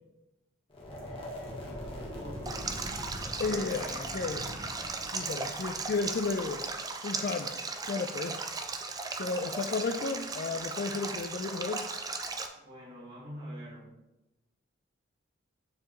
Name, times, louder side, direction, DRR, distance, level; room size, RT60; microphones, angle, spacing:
sound 1, 0.7-6.7, left 1 dB, 30° left, 1.3 m, -42 dB
voice 1, 1.8-2.6 3.4-4.3 5.3-5.8 12.5-13.9, equal, 60° right, -6 dB, 1.9 m, -47 dB
Stream, 2.5-12.5, right 4 dB, 20° right, 0.4 m, -37 dB
voice 2, 3.4-4.4 5.1-6.6 7.0-7.5 7.9-8.4 9.2-11.9, left 4 dB, 45° left, 5 dB, 0.4 m, -33 dB
7.4 x 4.6 x 3.0 m, 0.93 s
head